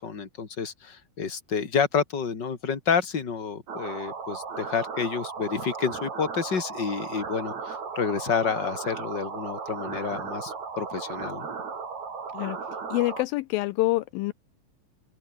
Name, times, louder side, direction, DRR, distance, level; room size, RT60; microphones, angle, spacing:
voice 1, 0.0-11.5, left 6 dB, 30° left, 3.1 m, -29 dB
sound 1, 3.7-13.3, right 5 dB, 45° right, 5.2 m, -36 dB
voice 2, 12.9-14.3, left 19 dB, 80° left, 2.3 m, -26 dB
open air
omnidirectional pair, 4.4 m